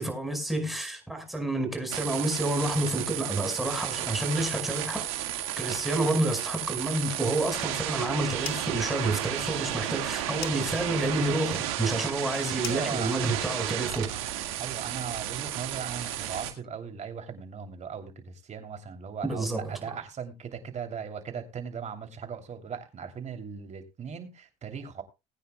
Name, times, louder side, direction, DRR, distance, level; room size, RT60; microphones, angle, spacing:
voice 1, 0.0-5.0 5.6-14.1 19.2-19.7, right 1 dB, ahead, 5.2 m, -29 dB
sound 1, 1.9-16.5, right 12 dB, 85° right, 1.9 m, -33 dB
sound 2, 8.0-8.8 9.1-14.0, left 9 dB, 60° left, 2.3 m, -44 dB
voice 2, 12.6-13.2 13.9-14.2 14.6-25.0, right 6 dB, 45° right, 3.1 m, -38 dB
20.5 x 9.3 x 2.3 m
supercardioid pair, 85°, 17 cm